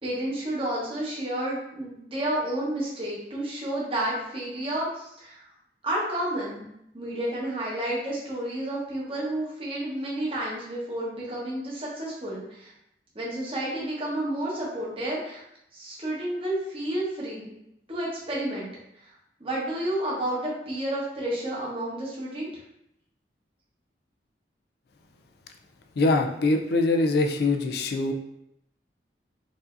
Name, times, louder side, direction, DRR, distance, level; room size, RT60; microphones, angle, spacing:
voice 1, 0.0-5.4 5.8-6.7 6.9-12.7 13.1-15.4 15.7-17.5 17.9-18.7 19.4-22.5, right 1 dB, 30° right, -6 dB, 1.1 m, -30 dB
voice 2, 26.0-28.1, left 2 dB, 60° left, 4 dB, 0.4 m, -23 dB
4.7 x 2.7 x 2.5 m, 0.79 s
head